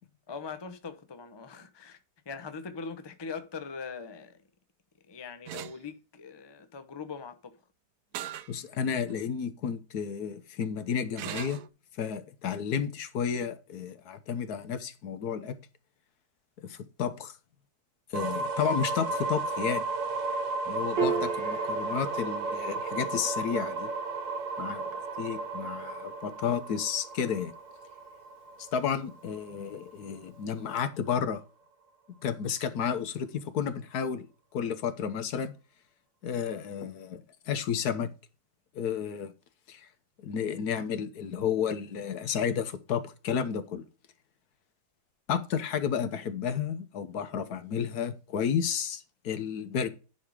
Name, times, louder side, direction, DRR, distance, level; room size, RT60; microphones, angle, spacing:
voice 1, 0.3-2.0 2.3-4.4 5.1-7.6 24.6-24.9, left 5 dB, 25° left, 0.6 m, -41 dB
sound 1, 5.5-5.8 8.1-8.5 9.1-9.2 11.2-11.7, right 11 dB, 75° right, 1.1 m, -38 dB
voice 2, 8.5-11.6 12.0-15.5 16.6-17.3 18.1-19.8 20.7-23.9 24.6-27.5 28.6-31.4 32.2-34.3 34.5-35.5 36.2-38.1 38.7-39.3 39.7-39.9 40.2-43.8 45.3-49.9, left 7 dB, 70° left, 1.4 m, -32 dB
sound 2, 18.1-29.9, right 3 dB, 55° right, 1.3 m, -34 dB
Piano, 21.0-27.6, right 5 dB, 35° right, 1.5 m, -38 dB
10.5 x 4.2 x 4.7 m
omnidirectional pair, 1.8 m